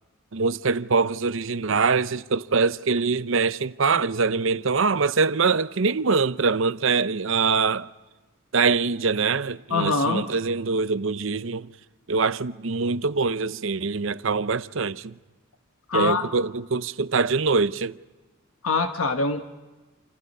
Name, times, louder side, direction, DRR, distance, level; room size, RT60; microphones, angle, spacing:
voice 1, 0.3-7.9 8.5-11.7 12.1-15.2 15.9-18.0, right 4 dB, 65° right, 0.7 m, -23 dB
voice 2, 9.7-10.3 15.9-16.2 18.6-19.5, left 3 dB, 80° left, 1.2 m, -23 dB
28.5 x 27.5 x 5.5 m
head